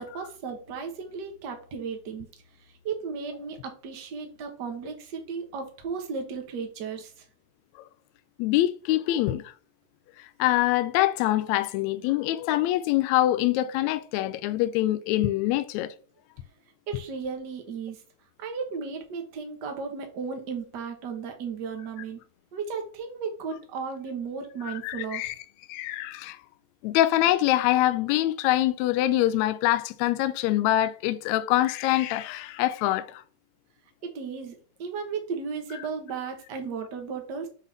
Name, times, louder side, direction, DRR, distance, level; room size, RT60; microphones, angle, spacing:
voice 1, 0.0-2.3 2.8-7.2 16.9-18.0 18.4-22.2 22.5-25.2 34.0-37.5, right 5 dB, 50° right, 1.3 m, -35 dB
voice 2, 8.4-9.4 10.4-15.9 24.7-25.4 25.7-26.4 26.8-33.2, left 14 dB, 80° left, 1.8 m, -24 dB
7.2 x 3.8 x 4.1 m
omnidirectional pair, 3.5 m